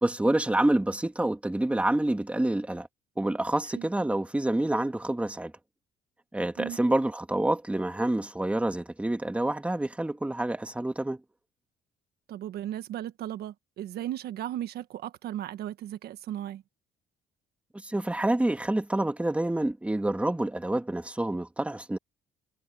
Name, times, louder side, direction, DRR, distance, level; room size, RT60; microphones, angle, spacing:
voice 1, 0.0-2.9 3.2-5.5 6.3-11.2 17.8-22.0, right 1 dB, 5° right, 1.9 m, -27 dB
voice 2, 12.3-16.6, right 12 dB, 70° right, 1.5 m, -36 dB
cardioid pair, 110°, 17 cm